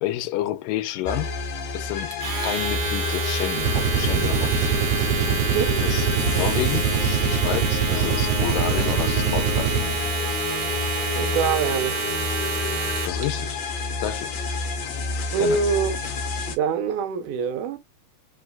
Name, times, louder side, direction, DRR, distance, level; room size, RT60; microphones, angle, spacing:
voice 1, 0.0-1.3 1.7-2.2 2.4-4.7 5.8-6.1 6.3-9.7 13.0-13.6 14.0-14.3 15.4-15.6, left 13 dB, 85° left, 2.3 m, -29 dB
sound 1, 1.1-16.6, left 5 dB, 60° left, 2.2 m, -30 dB
Domestic sounds home sounds, 2.1-13.2, right 5 dB, 60° right, 1.6 m, -29 dB
sound 2, 3.6-10.1, right 6 dB, 90° right, 2.3 m, -24 dB
voice 2, 11.2-12.0 15.3-16.0 16.5-17.8, right 6 dB, 75° right, 2.2 m, -24 dB
5.4 x 3.2 x 2.3 m
omnidirectional pair, 3.9 m